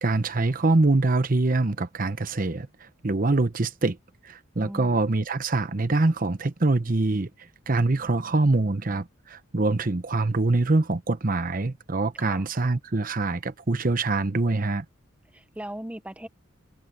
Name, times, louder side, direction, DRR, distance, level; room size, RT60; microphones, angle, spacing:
voice 1, 0.0-4.0 4.2-7.3 7.7-14.8, right 2 dB, 45° right, 0.9 m, -24 dB
voice 2, 4.6-5.0 12.1-12.5 15.3-16.3, right 1 dB, 5° right, 0.9 m, -38 dB
head